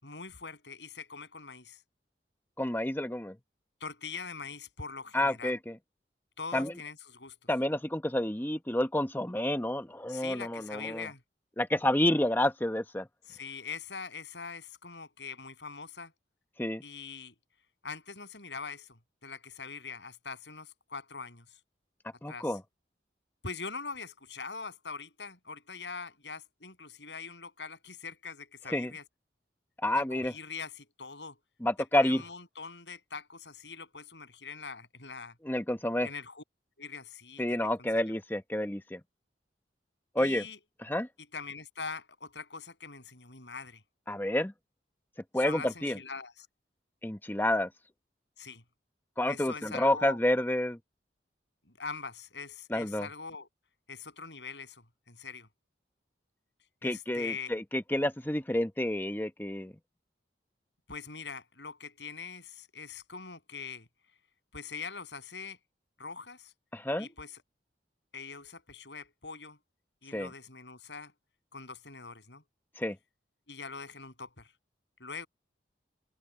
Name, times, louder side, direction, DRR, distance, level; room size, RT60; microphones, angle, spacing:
voice 1, 0.0-1.8 3.8-5.6 6.4-7.4 10.1-11.2 13.3-16.1 16.8-17.3 17.8-21.6 22.3-22.5 23.4-29.0 30.0-31.4 31.9-35.3 36.0-36.4 36.8-37.7 40.2-40.6 41.3-43.8 45.4-46.5 48.4-48.6 49.3-50.2 51.8-53.5 53.9-55.5 56.8-57.5 60.9-63.9 64.5-65.6 66.0-66.5 67.0-67.4 68.1-69.6 70.0-71.1 71.5-72.4 73.5-74.5 75.0-75.3, left 5 dB, 85° left, 7.3 m, -43 dB
voice 2, 2.6-3.4 5.1-5.8 6.5-6.7 7.5-11.1 11.6-13.1 16.6-16.8 22.2-22.6 28.7-28.9 29.8-30.3 31.6-32.2 35.4-36.1 37.4-39.0 40.1-40.4 40.8-41.1 44.1-44.5 45.3-46.0 47.0-47.7 49.2-50.8 52.7-53.1 56.8-59.7 66.7-67.1 70.1-70.3 72.8-73.0, left 1 dB, 10° left, 1.0 m, -29 dB
head